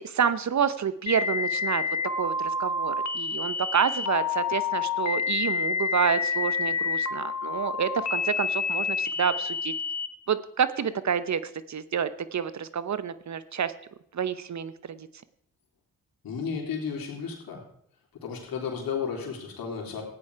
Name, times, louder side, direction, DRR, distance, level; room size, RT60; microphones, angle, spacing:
voice 1, 0.0-1.8 2.2-9.7 10.3-11.4 11.7-13.7 14.1-15.1, right 7 dB, 50° right, 14 dB, 0.9 m, -28 dB
sound 1, 1.1-10.1, left 5 dB, 50° left, 1.3 m, -28 dB
voice 2, 16.2-17.6 18.1-20.0, left 6 dB, 80° left, 0 dB, 3.4 m, -33 dB
14.5 x 9.7 x 4.7 m, 0.72 s
supercardioid pair, 50°, 35 cm